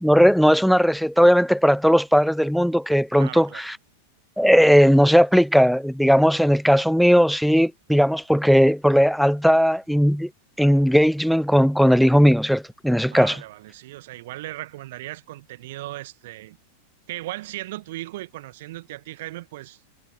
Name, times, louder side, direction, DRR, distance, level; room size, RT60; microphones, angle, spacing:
voice 1, 0.0-3.8 4.4-10.3 10.6-13.4, equal, ahead, 0.3 m, -17 dB
voice 2, 3.1-3.7 13.1-16.6 17.1-19.8, right 17 dB, 55° right, 1.3 m, -37 dB
figure-of-eight pair, 90°, 0 cm